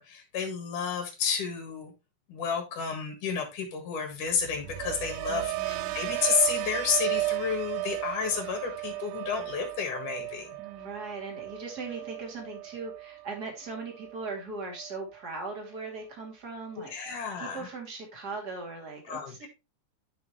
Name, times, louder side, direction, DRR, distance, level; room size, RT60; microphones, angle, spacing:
voice 1, 0.0-1.9 2.3-10.6 16.9-17.7 19.1-19.5, left 6 dB, 80° left, 4 dB, 3.2 m, -31 dB
sound 1, 4.3-14.4 14.7-15.2, right 18 dB, 85° right, 2.1 m, -35 dB
voice 2, 5.3-6.0 10.6-19.5, right 3 dB, 30° right, 1 dB, 2.9 m, -39 dB
10.0 x 6.1 x 3.1 m, 0.26 s
omnidirectional pair, 3.6 m